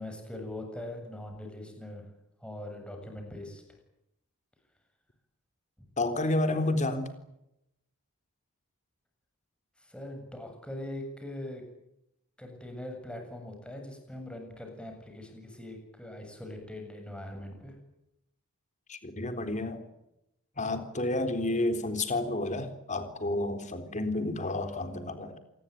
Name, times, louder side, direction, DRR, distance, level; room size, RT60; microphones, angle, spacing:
voice 1, 0.0-2.0 2.4-3.6 9.8-11.6 12.4-17.8, left 1 dB, 5° left, 4 dB, 7.6 m, -41 dB
voice 2, 6.0-7.1 18.9-19.8 20.6-25.4, left 2 dB, 35° left, 8 dB, 3.8 m, -30 dB
27.5 x 20.5 x 9.3 m, 0.85 s
head